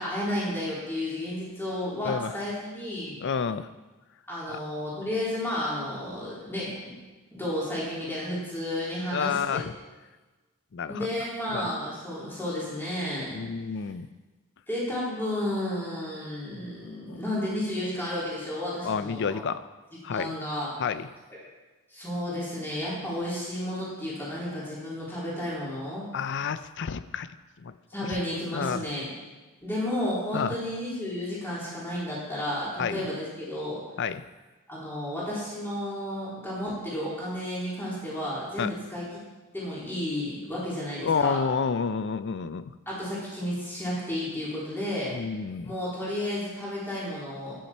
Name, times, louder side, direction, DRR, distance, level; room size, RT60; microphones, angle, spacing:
voice 1, 0.0-3.2 4.3-6.7 7.3-9.6 10.9-13.5 14.7-19.4 20.1-20.7 21.9-26.1 27.9-29.1 29.6-33.8 34.7-39.0 39.5-41.4 42.9-45.1 45.6-47.6, left 1 dB, 10° left, -8 dB, 3.6 m, -32 dB
voice 2, 3.2-3.7 4.5-4.6 9.1-9.7 10.7-11.1 11.5-11.7 13.3-14.1 17.1-17.2 18.8-19.6 20.0-20.3 20.8-21.1 26.1-27.3 27.6-27.7 28.1-28.2 28.5-28.8 30.3-30.6 32.8-33.0 34.0-34.2 38.6-38.7 41.0-42.7 45.1-45.7, left 6 dB, 55° left, 13 dB, 0.4 m, -29 dB
13.5 x 9.4 x 4.4 m, 1.2 s
head